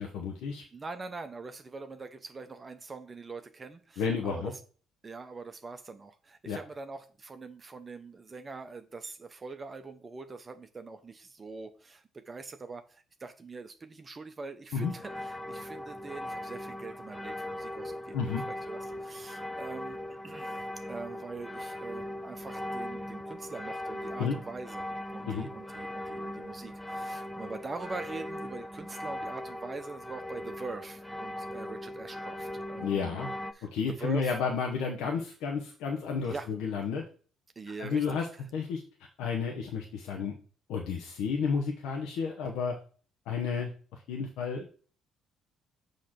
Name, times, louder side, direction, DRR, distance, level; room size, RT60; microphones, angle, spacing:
voice 1, 0.0-0.6 4.0-4.5 6.4-6.6 14.7-14.9 18.1-18.4 24.2-24.4 25.3-25.5 32.8-33.3 33.7-37.0 37.8-38.3 38.5-38.8 39.2-40.3 40.7-42.7 43.3-43.7 44.1-44.7, left 6 dB, 75° left, 1.0 m, -31 dB
voice 2, 0.7-4.6 5.0-20.0 20.2-33.2 33.5-34.4 36.2-36.5 37.6-38.4, right 4 dB, 30° right, 0.7 m, -43 dB
sound 1, 14.8-33.5, left 1 dB, 5° left, 0.6 m, -39 dB
6.5 x 3.2 x 5.9 m
hypercardioid pair, 60°, 0 cm